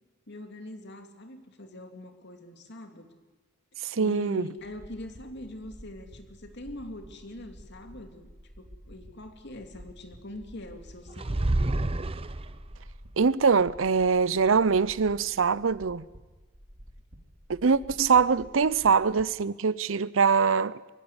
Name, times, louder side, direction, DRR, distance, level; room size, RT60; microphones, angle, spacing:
voice 1, 0.3-3.1 4.0-8.3 8.6-11.6, left 1 dB, 60° left, 2.6 m, -43 dB
voice 2, 3.8-4.5 13.2-16.0 17.5-20.9, right 5 dB, 75° right, 0.6 m, -23 dB
sound 1, 4.6-19.2, equal, 55° right, 3.4 m, -51 dB
sound 2, 11.2-12.8, right 2 dB, 30° right, 0.8 m, -28 dB
22.5 x 16.0 x 9.9 m
head